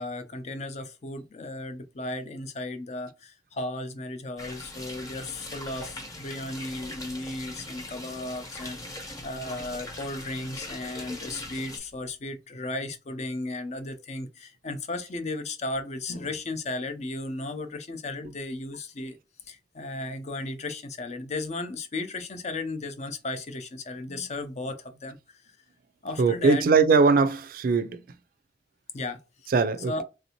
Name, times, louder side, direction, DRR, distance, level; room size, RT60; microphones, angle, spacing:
voice 1, 0.0-19.2 19.5-25.5 26.0-26.6 28.9-29.5 29.9-30.0, left 2 dB, 40° left, 0.5 m, -35 dB
sound 1, 4.4-11.8, left 1 dB, 20° left, 0.9 m, -41 dB
voice 2, 26.2-28.0 29.5-30.0, right 4 dB, 55° right, 0.3 m, -21 dB
3.3 x 2.6 x 2.8 m
head